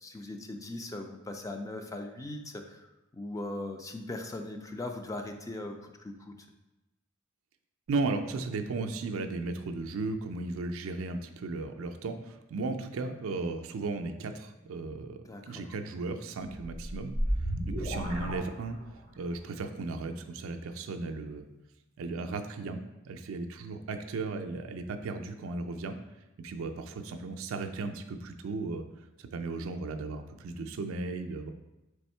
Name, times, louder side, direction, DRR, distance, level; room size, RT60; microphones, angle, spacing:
voice 1, 0.0-2.8 3.1-6.4 15.2-15.7, left 2 dB, 15° left, 4 dB, 0.3 m, -39 dB
voice 2, 7.9-17.1 17.7-18.8 19.2-21.5 22.0-26.0 26.4-28.8 29.2-31.5, right 3 dB, 70° right, 6 dB, 0.4 m, -35 dB
sound 1, 16.5-19.2, equal, 40° left, 1.0 m, -33 dB
3.5 x 3.4 x 4.3 m, 0.99 s
head